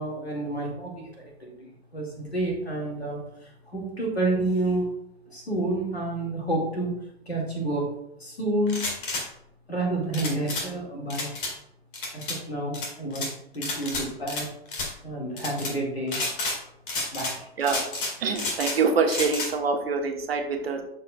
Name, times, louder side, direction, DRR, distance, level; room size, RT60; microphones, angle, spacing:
voice 1, 0.0-4.9 5.3-6.9 7.3-7.9 8.2-8.8 9.7-11.3 12.1-14.5 15.0-16.2 17.1-17.5, right 2 dB, 85° left, -1 dB, 2.2 m, -29 dB
sound 1, 8.7-9.2 10.1-10.7 11.1-11.5 11.9-12.4 12.7-13.3 13.6-14.4 14.7-14.9 15.4-15.7 16.1-16.6 16.9-17.4 17.6-18.8 19.1-19.5, left 2 dB, 55° left, 2.1 m, -30 dB
voice 2, 18.2-20.8, right 5 dB, 70° right, 3 dB, 1.2 m, -25 dB
12.0 x 4.4 x 2.4 m, 0.80 s
figure-of-eight pair, 100°, 31 cm